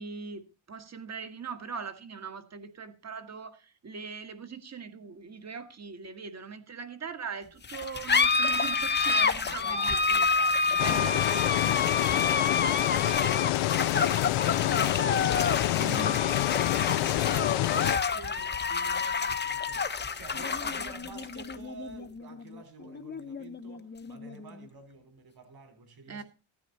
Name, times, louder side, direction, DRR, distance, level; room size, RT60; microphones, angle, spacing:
voice 1, 0.0-10.2 10.8-11.2 15.7-16.2 26.1-26.2, right 5 dB, 30° right, 1.7 m, -40 dB
sound 1, 7.6-24.6, left 5 dB, 20° left, 0.9 m, -29 dB
voice 2, 9.4-15.2 16.4-26.2, right 4 dB, 45° right, 4.4 m, -49 dB
sound 2, 10.8-18.0, left 17 dB, 85° left, 0.6 m, -27 dB
15.5 x 9.6 x 4.1 m
cardioid pair, 135°, 49 cm